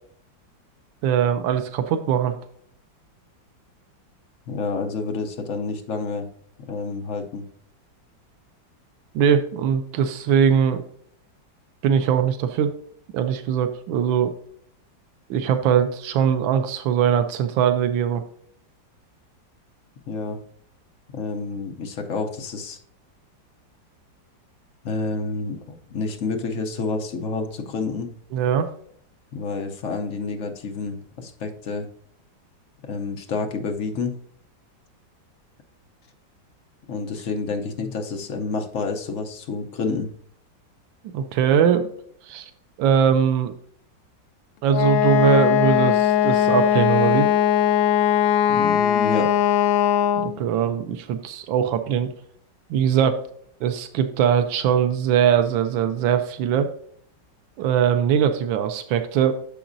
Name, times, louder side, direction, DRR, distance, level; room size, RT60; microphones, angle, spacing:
voice 1, 1.0-2.4 9.1-10.8 11.8-12.7 13.1-14.3 15.3-18.2 28.3-28.7 41.1-41.9 42.2-42.5 42.8-43.5 44.6-47.3 50.2-52.1 52.7-53.3 53.6-56.7 57.6-59.3, right 8 dB, 90° right, 8 dB, 1.4 m, -21 dB
voice 2, 4.5-6.3 6.7-7.5 20.1-20.4 21.1-22.8 24.8-28.1 29.3-31.9 32.8-34.2 36.9-40.1 48.5-49.3, left 4 dB, 55° left, 4 dB, 0.9 m, -29 dB
Wind instrument woodwind instrument, 44.7-50.4, left 10 dB, 85° left, 1.4 m, -19 dB
10.0 x 7.0 x 2.6 m, 0.63 s
omnidirectional pair, 2.1 m